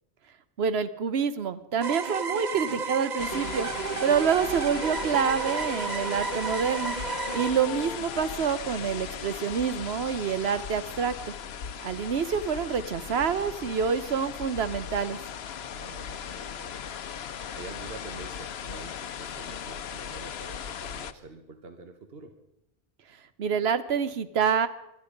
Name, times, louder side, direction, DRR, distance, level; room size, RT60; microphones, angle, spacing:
voice 1, 0.6-3.7 4.0-7.0 7.3-11.3 11.8-15.2 23.4-24.7, right 7 dB, 90° right, 13 dB, 1.1 m, -27 dB
sound 1, 1.8-7.5, right 5 dB, 45° right, 0.9 m, -32 dB
voice 2, 2.6-2.9 7.3-7.5 15.5-22.3, right 3 dB, 70° right, 7 dB, 1.5 m, -47 dB
sound 2, 3.2-21.1, left 8 dB, 90° left, 1.0 m, -38 dB
Wind instrument woodwind instrument, 3.8-6.4 6.7-9.4, left 5 dB, 55° left, 1.0 m, -43 dB
21.0 x 13.0 x 5.2 m, 0.87 s
omnidirectional pair, 1.0 m